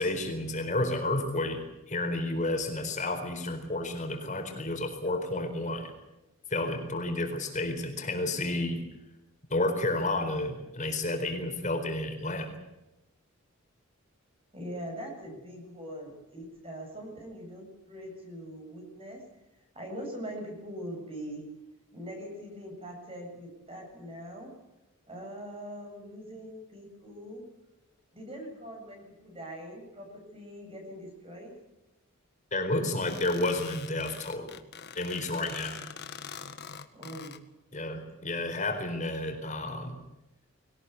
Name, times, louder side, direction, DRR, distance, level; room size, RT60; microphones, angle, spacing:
voice 1, 0.0-5.9 6.5-8.9 9.5-12.5 32.5-34.6 34.9-35.8 37.7-40.0, left 2 dB, 35° left, 6 dB, 4.3 m, -31 dB
voice 2, 14.5-19.2 19.7-21.4 21.9-24.5 25.1-27.4 28.1-31.5 36.9-37.4, equal, 25° right, 2 dB, 7.8 m, -42 dB
sound 1, 33.0-37.4, left 7 dB, 50° left, 1.7 m, -44 dB
22.5 x 19.0 x 8.3 m, 0.95 s
head